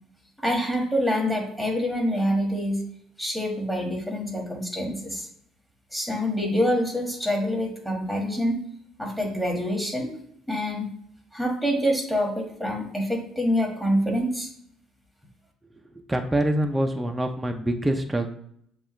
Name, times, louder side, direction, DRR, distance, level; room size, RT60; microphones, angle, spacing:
voice 1, 0.4-2.8 3.2-5.3 5.9-8.5 9.0-10.2 10.5-10.9 11.3-14.5, equal, 5° left, 0 dB, 1.5 m, -26 dB
voice 2, 15.9-18.3, right 1 dB, 10° right, 4 dB, 0.5 m, -25 dB
6.9 x 2.4 x 3.1 m, 0.68 s
cardioid pair, 90°, 0 cm